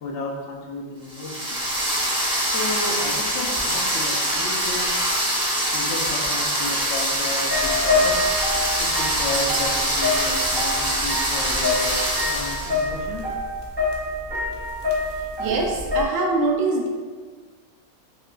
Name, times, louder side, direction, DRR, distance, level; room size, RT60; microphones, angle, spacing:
voice 1, 0.0-1.7 2.4-5.0 5.7-8.2 8.6-13.2, left 2 dB, 70° left, -1 dB, 0.9 m, -33 dB
sound 1, 1.1-12.8, right 1 dB, 5° right, 0.7 m, -24 dB
sound 2, 4.3-5.2 6.3-6.9 7.9-8.5 9.1-9.7 10.2-11.1, right 3 dB, 55° right, 0.8 m, -38 dB
sound 3, 7.5-16.0, left 2 dB, 40° right, 0.4 m, -26 dB
voice 2, 15.4-16.9, right 3 dB, 85° right, 1 dB, 1.0 m, -23 dB
5.5 x 2.4 x 2.3 m, 1.5 s
omnidirectional pair, 1.3 m